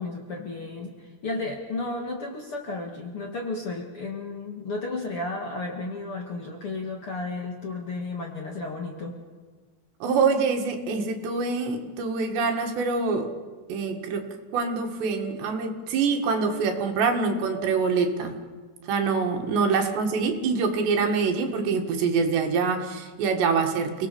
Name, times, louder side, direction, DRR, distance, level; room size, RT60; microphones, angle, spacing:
voice 1, 0.0-9.2, left 3 dB, 45° left, 2 dB, 2.2 m, -33 dB
voice 2, 10.0-13.3 13.7-14.3 14.5-18.4 18.8-24.1, right 5 dB, 80° right, 4 dB, 4.2 m, -25 dB
29.5 x 19.0 x 7.0 m, 1.4 s
omnidirectional pair, 4.9 m